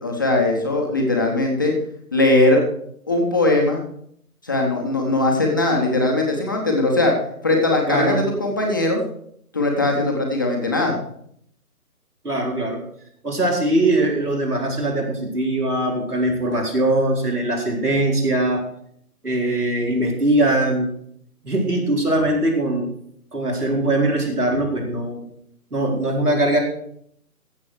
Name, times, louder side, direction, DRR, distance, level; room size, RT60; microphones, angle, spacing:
voice 1, 0.0-1.7 2.1-2.6 3.1-3.8 4.4-7.1 7.4-9.0 9.5-10.9, left 2 dB, 15° left, 0 dB, 0.8 m, -20 dB
voice 2, 7.9-8.2 12.2-12.8 13.2-18.6 19.2-20.9 21.4-22.9 23.3-25.2 25.7-26.6, right 1 dB, 85° right, 0 dB, 4.1 m, -21 dB
15.0 x 7.0 x 4.8 m, 0.68 s
figure-of-eight pair, 145°, 45 cm